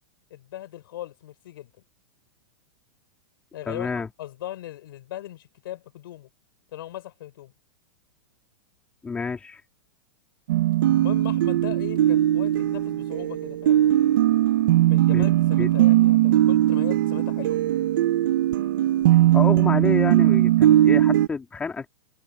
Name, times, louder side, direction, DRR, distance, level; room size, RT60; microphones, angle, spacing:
voice 1, 0.3-1.7 3.5-6.3 6.7-7.5 11.0-13.8 14.9-17.6, left 13 dB, 65° left, 6.4 m, -39 dB
voice 2, 3.7-4.1 9.0-9.6 15.1-15.3 15.6-15.7 19.3-21.9, left 4 dB, 10° left, 2.3 m, -29 dB
sound 1, 10.5-21.3, right 13 dB, 60° right, 0.9 m, -19 dB
supercardioid pair, 170°, 13 cm